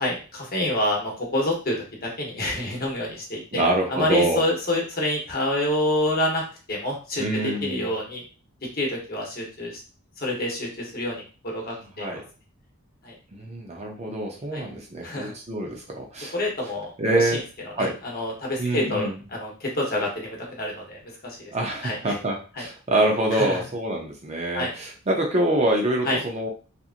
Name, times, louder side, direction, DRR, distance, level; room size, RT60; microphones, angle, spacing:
voice 1, 0.0-3.6 3.9-8.2 8.8-9.8 10.2-12.2 13.0-13.1 14.5-14.6 15.0-15.3 16.3-17.4 17.8-21.4 21.8-22.2 23.3-23.6 24.5-24.7 26.0-26.2, left 1 dB, 45° left, -1 dB, 0.9 m, -27 dB
voice 2, 3.5-4.4 7.2-7.9 12.0-12.2 13.3-16.3 17.0-17.4 17.7-17.9 18.6-19.2 21.5-26.5, right 1 dB, 30° right, 0 dB, 0.5 m, -25 dB
2.8 x 2.5 x 2.4 m, 0.35 s
head